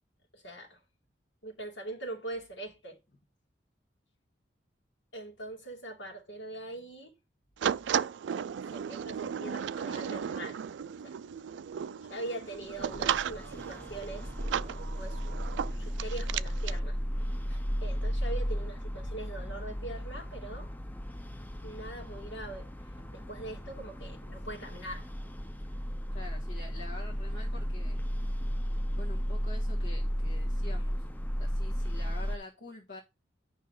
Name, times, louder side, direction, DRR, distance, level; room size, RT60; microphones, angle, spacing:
voice 1, 0.3-0.8 1.4-3.0 5.1-7.1 7.6-7.7 8.7-10.6 11.0-11.2 12.0-20.7 21.6-25.1, right 2 dB, 80° left, 2.6 m, -42 dB
sound 1, 7.6-16.8, right 8 dB, 70° right, 0.3 m, -35 dB
sound 2, 12.7-32.4, equal, 10° left, 0.5 m, -34 dB
voice 2, 26.1-28.0 28.9-31.1 31.4-33.0, left 2 dB, 65° left, 1.5 m, -47 dB
9.4 x 5.6 x 3.8 m
head